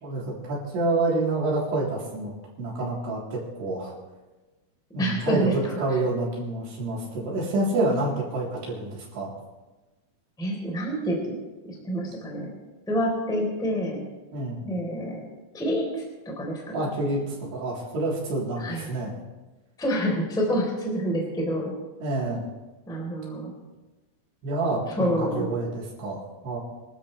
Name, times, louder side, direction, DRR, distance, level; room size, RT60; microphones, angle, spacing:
voice 1, 0.0-2.3 2.6-3.9 4.9-9.3 14.3-14.6 16.7-19.2 22.0-22.5 24.4-26.6, right 2 dB, 55° right, -5 dB, 5.6 m, -28 dB
voice 2, 5.0-5.5 10.4-11.3 11.6-12.5 12.9-14.0 14.6-15.2 15.5-16.8 18.6-18.9 19.8-21.7 22.9-23.5 25.0-25.5, equal, ahead, -1 dB, 2.9 m, -27 dB
26.5 x 12.5 x 3.4 m, 1.2 s
omnidirectional pair, 5.9 m